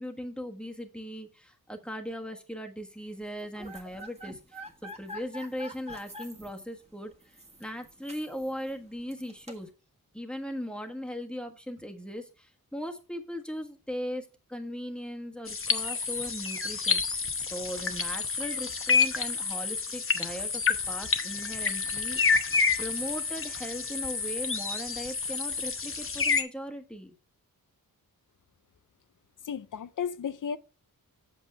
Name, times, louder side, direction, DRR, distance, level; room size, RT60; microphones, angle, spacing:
voice 1, 0.0-7.3 7.6-9.7 10.1-17.2 17.5-22.5 22.8-27.1, equal, 5° left, 1.4 m, -38 dB
sound 1, 3.2-9.7, equal, 15° right, 1.7 m, -47 dB
sound 2, 15.5-26.4, left 5 dB, 35° left, 1.0 m, -29 dB
Wind instrument woodwind instrument, 18.5-25.9, left 9 dB, 85° left, 1.8 m, -50 dB
voice 2, 29.5-30.6, left 7 dB, 60° left, 0.6 m, -33 dB
8.3 x 7.3 x 3.4 m
wide cardioid pair, 120°, 36 cm